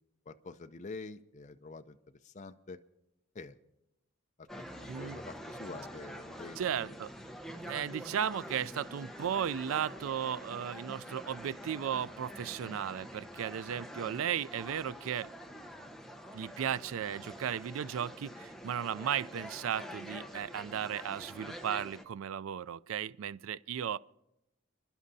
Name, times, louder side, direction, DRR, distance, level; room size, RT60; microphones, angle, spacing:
voice 1, 0.3-2.0 2.2-2.8 3.3-3.6 4.7-6.9, left 3 dB, 35° left, 0.5 m, -46 dB
sound 1, 4.5-22.0, equal, ahead, 0.8 m, -46 dB
voice 2, 4.9-5.2 6.6-7.1 7.6-15.3 16.3-24.0, right 9 dB, 85° right, 0.4 m, -35 dB
29.5 x 11.0 x 2.7 m
head